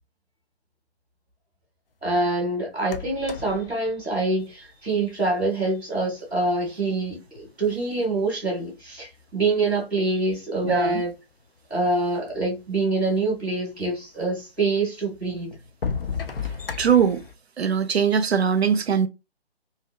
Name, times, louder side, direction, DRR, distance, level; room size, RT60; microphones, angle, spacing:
voice 1, 2.0-11.1 11.7-15.5, right 2 dB, 5° left, 0.5 m, -25 dB
sound 1, 2.8-5.1 6.2-6.3 6.9-8.0 8.7-9.5 10.3-10.4 10.6-10.7 11.3-11.4 11.7-12.4 14.0-14.1 14.8-14.9 15.5-17.4, left 6 dB, 60° left, 0.5 m, -34 dB
voice 2, 10.6-11.0 16.8-17.2 17.6-19.1, right 7 dB, 75° right, 0.5 m, -21 dB
2.6 x 2.1 x 2.3 m
figure-of-eight pair, 145°, 32 cm